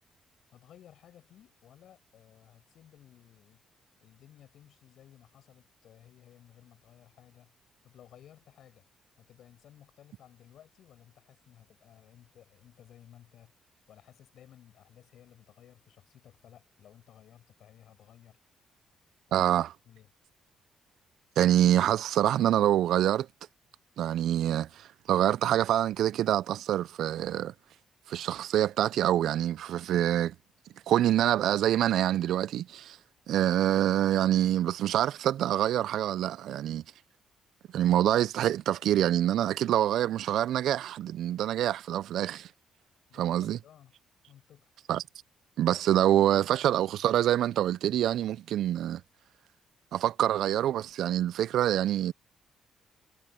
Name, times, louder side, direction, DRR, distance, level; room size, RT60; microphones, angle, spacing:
voice 1, 0.5-3.6 4.0-7.5 7.8-8.8 9.2-13.5 13.9-18.4 19.3-19.5 19.8-20.1 43.1-43.9 44.3-44.7, left 11 dB, 70° left, 7.9 m, -57 dB
voice 2, 19.3-19.7 21.4-23.3 24.0-27.5 28.1-30.3 30.9-33.0 33.3-36.8 37.7-42.5 43.2-43.6 44.9-45.0 45.6-49.0 49.9-52.1, right 12 dB, 75° right, 0.3 m, -26 dB
cardioid pair, 135°, 0 cm